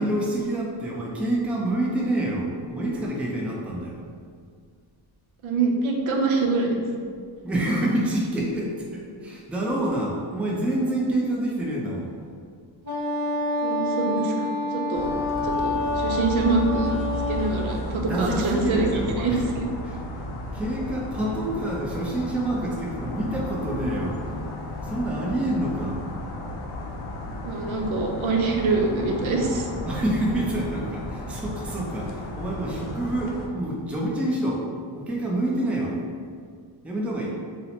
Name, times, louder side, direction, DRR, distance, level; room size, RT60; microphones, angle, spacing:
voice 1, 0.0-4.0 7.4-12.1 18.1-19.4 19.8-20.0 20.5-24.4 24.8-26.0 29.8-34.6 34.9-36.0 36.8-37.3, right 1 dB, 5° right, -3 dB, 0.4 m, -27 dB
voice 2, 5.4-6.8 13.6-15.1 15.4-16.9 17.3-18.9 19.2-19.6 27.4-29.7, right 3 dB, 80° right, 1 dB, 0.6 m, -25 dB
Wind instrument woodwind instrument, 12.8-17.7, left 2 dB, 35° right, 0.9 m, -27 dB
sound 1, 14.9-33.5, left 1 dB, 90° left, 0.6 m, -34 dB
2.8 x 2.1 x 4.0 m, 2.1 s
wide cardioid pair, 115°, 47 cm